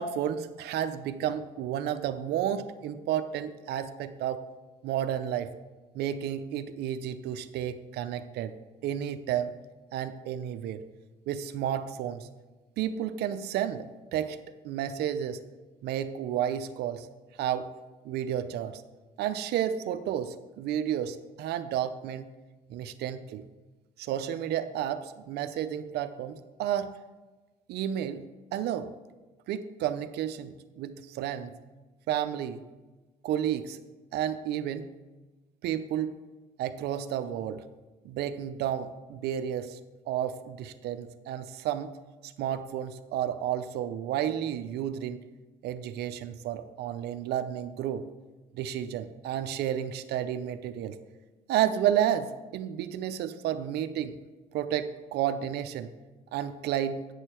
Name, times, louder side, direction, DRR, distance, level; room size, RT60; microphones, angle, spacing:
voice 1, 0.0-4.4 4.8-5.5 5.9-8.5 8.8-9.5 9.9-10.8 11.3-12.3 12.8-14.4 14.6-15.4 15.8-17.1 17.4-17.7 18.0-18.8 19.2-22.3 22.7-23.4 24.0-26.9 27.7-28.2 28.5-28.9 29.5-31.6 32.1-32.6 33.2-33.8 34.1-34.9 35.6-36.1 36.6-37.7 38.0-39.8 40.1-42.0 42.2-45.2 45.6-48.0 48.5-51.0 51.5-54.2 54.5-55.9 56.3-57.0, right 10 dB, 75° right, 11 dB, 0.6 m, -31 dB
9.0 x 6.6 x 4.5 m, 1.2 s
cardioid pair, 110°, 17 cm